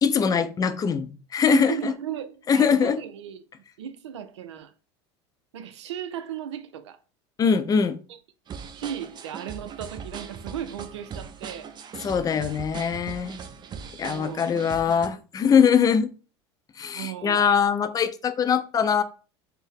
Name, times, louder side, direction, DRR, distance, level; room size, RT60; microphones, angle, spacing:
voice 1, 0.0-1.9 2.5-3.0 7.4-8.0 12.0-13.3 14.0-16.1 16.8-19.0, left 7 dB, 25° left, 0.4 m, -22 dB
voice 2, 1.4-3.4 3.8-4.7 5.5-7.0 8.7-11.7 14.0-14.5 16.9-17.6, right 9 dB, 90° right, 0.4 m, -35 dB
sound 1, 8.5-15.1, right 6 dB, 30° right, 0.5 m, -40 dB
4.3 x 2.0 x 3.4 m
hypercardioid pair, 95°, 14 cm